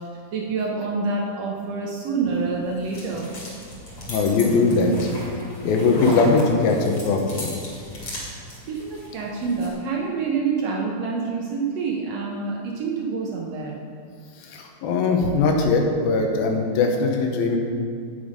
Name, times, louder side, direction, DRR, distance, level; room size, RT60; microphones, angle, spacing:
voice 1, 0.0-3.3 8.2-8.3 8.7-13.8, right 4 dB, 75° right, -1 dB, 1.5 m, -27 dB
sound 1, 2.3-9.7, left 1 dB, 40° left, 3.6 m, -37 dB
voice 2, 4.1-5.1 5.6-7.5 14.4-17.6, left 3 dB, 85° left, 2 dB, 2.9 m, -20 dB
9.2 x 9.0 x 5.1 m, 2.2 s
omnidirectional pair, 4.2 m